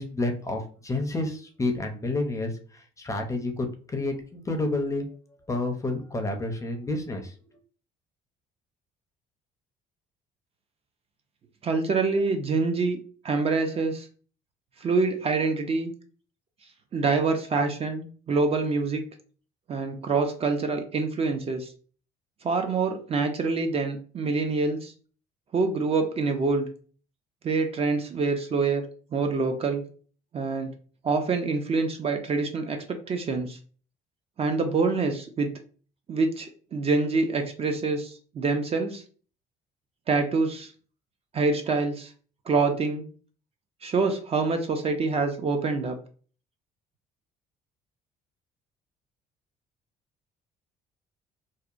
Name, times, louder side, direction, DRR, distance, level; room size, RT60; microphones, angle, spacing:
voice 1, 0.0-2.5 3.0-5.1 5.5-7.3, left 2 dB, 20° left, 4 dB, 0.5 m, -29 dB
voice 2, 11.6-13.0 13.2-14.1 14.8-15.9 16.9-19.0 19.7-21.7 22.4-24.9 25.5-26.7 27.4-28.9 29.1-29.8 30.3-30.7 31.0-33.6 34.4-35.5 36.1-39.0 40.1-40.7 41.3-42.1 42.5-43.0 43.8-46.0, right 4 dB, 35° right, 5 dB, 0.4 m, -26 dB
2.8 x 2.1 x 2.4 m, 0.41 s
cardioid pair, 110°, 17 cm